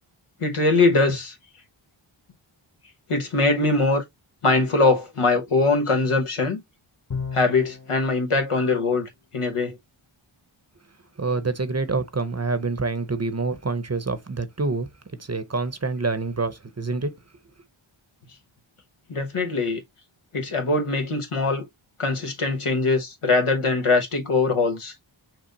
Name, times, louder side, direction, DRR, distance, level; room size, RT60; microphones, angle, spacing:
voice 1, 0.4-1.3 3.1-4.0 4.4-6.6 7.3-9.8 19.1-19.8 20.3-21.7 22.0-24.9, left 3 dB, 85° left, 1.2 m, -22 dB
Bowed string instrument, 7.1-8.0, left 5 dB, 35° left, 0.8 m, -32 dB
voice 2, 11.2-14.9 15.2-17.1, right 3 dB, 30° right, 0.8 m, -26 dB
5.9 x 2.0 x 4.0 m
wide cardioid pair, 45°, 50 cm